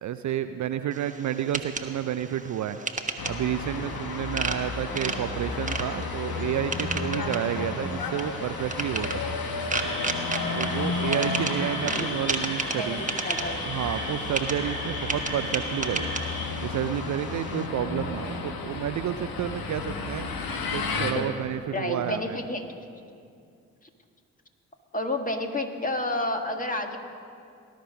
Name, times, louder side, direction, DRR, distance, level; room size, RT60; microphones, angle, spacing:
voice 1, 0.0-2.8 3.3-9.4 10.6-13.0 13.7-16.1 16.6-20.3 20.7-22.4, right 10 dB, 45° right, 10 dB, 0.6 m, -30 dB
sound 1, 0.9-17.7, right 3 dB, 20° right, 1.3 m, -35 dB
sound 2, 3.2-21.1, left 4 dB, 55° left, 1.6 m, -33 dB
sound 3, 9.7-16.5, left 1 dB, 75° left, 3.2 m, -36 dB
voice 2, 11.7-12.1 12.7-13.6 21.1-21.3 21.7-22.6 24.9-27.0, left 1 dB, 20° left, 4 dB, 2.0 m, -30 dB
19.5 x 11.5 x 5.4 m, 2.4 s
hypercardioid pair, 40°, 42 cm